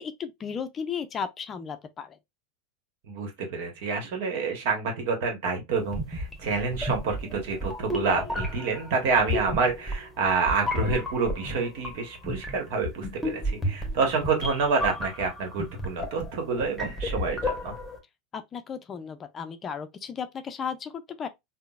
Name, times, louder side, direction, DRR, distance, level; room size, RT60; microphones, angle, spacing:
voice 1, 0.0-2.2 18.3-21.3, left 6 dB, 30° left, 0.4 m, -35 dB
voice 2, 3.1-17.7, right 4 dB, 65° right, 1.1 m, -28 dB
sound 1, 5.9-18.0, left 1 dB, ahead, 1.0 m, -33 dB
3.7 x 2.0 x 2.3 m
hypercardioid pair, 100°, 0 cm